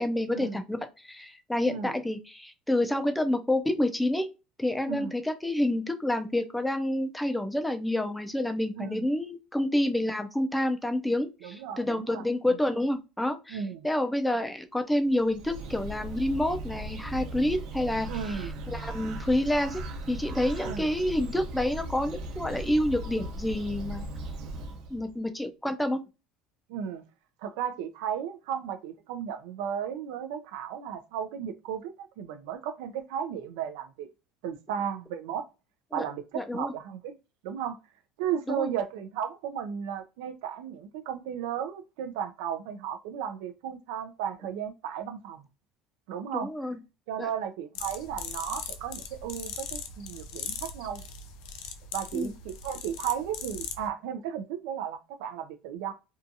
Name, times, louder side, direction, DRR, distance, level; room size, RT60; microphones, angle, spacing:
voice 1, 0.0-4.3 4.6-19.8 20.1-24.1 24.9-26.0 35.9-36.0 36.3-36.7 38.5-38.7 46.3-46.8 47.2-47.3 52.1-52.3, left 1 dB, 5° left, 0.4 m, -28 dB
voice 2, 8.8-9.1 11.4-12.2 13.5-13.9 18.1-18.5 20.6-20.9 26.7-27.0 27.4-34.1 34.4-35.5 35.9-36.2 36.5-37.2 37.4-37.8 38.2-45.4 46.1-46.5 47.1-51.0 51.9-55.9, right 8 dB, 85° right, 0.4 m, -34 dB
Bird, 15.1-25.1, right 1 dB, 65° right, 0.7 m, -38 dB
sound 1, 47.7-53.9, left 6 dB, 75° left, 0.5 m, -39 dB
2.6 x 2.3 x 2.5 m
cardioid pair, 160°, 0 cm